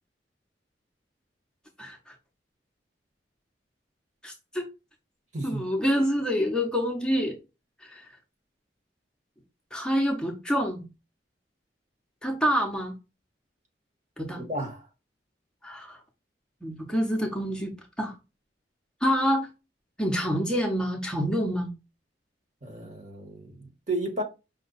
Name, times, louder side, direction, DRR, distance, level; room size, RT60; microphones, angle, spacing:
voice 1, 1.8-2.1 4.2-4.7 5.4-7.4 7.9-8.0 9.7-10.8 12.2-12.9 14.2-14.4 15.6-16.0 16.6-18.1 19.0-19.5 20.0-21.7, equal, 5° left, 0.6 m, -27 dB
voice 2, 5.3-5.7 14.3-14.9 22.6-24.2, right 1 dB, 45° right, 1.3 m, -33 dB
5.3 x 2.2 x 3.9 m
head